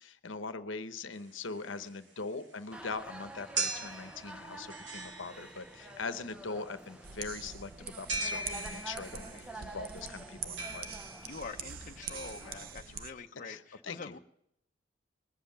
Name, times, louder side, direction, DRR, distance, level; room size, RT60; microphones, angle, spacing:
voice 1, 0.0-10.9 13.5-14.2, left 4 dB, 80° left, 11 dB, 0.9 m, -41 dB
sound 1, 1.2-13.1, right 3 dB, 70° right, 2.1 m, -41 dB
sound 2, 2.7-12.7, right 2 dB, 5° right, 0.7 m, -48 dB
sound 3, 7.0-13.1, right 7 dB, 50° right, 0.7 m, -44 dB
voice 2, 9.1-9.7 11.2-14.2, left 4 dB, 40° left, 3 dB, 0.7 m, -46 dB
20.5 x 7.7 x 7.1 m, 0.75 s
head